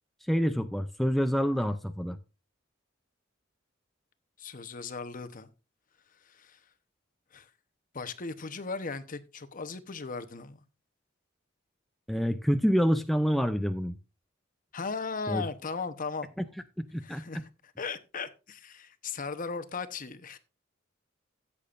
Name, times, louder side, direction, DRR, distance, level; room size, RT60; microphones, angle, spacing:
voice 1, 0.2-2.2 12.1-14.0 15.3-15.4 16.4-16.5 16.8-17.4, equal, ahead, 0.4 m, -27 dB
voice 2, 4.4-5.5 6.2-6.6 7.3-7.5 7.9-10.6 14.7-16.3 17.0-17.4 17.8-20.4, left 4 dB, 40° left, 0.9 m, -37 dB
14.0 x 8.5 x 2.5 m
head